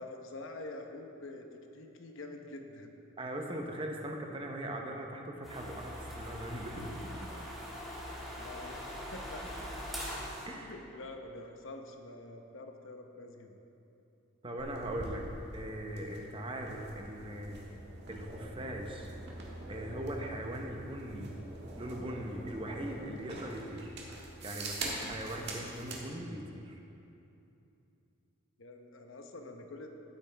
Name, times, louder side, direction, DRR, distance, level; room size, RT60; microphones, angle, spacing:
voice 1, 0.0-1.4 1.7-2.9 8.3-9.6 10.6-13.6 28.6-29.9, left 2 dB, 70° left, 4 dB, 0.9 m, -46 dB
voice 2, 3.2-7.3 10.5-10.7 14.4-15.3 15.5-17.6 18.1-19.1 19.7-21.4 21.8-23.9 24.4-26.8, right 1 dB, 25° right, 2 dB, 0.8 m, -40 dB
sound 1, 5.4-10.5, equal, ahead, 2.0 m, -42 dB
sound 2, 14.6-26.0, right 2 dB, 55° right, 1.6 m, -44 dB
15.0 x 8.5 x 3.4 m, 2.8 s
head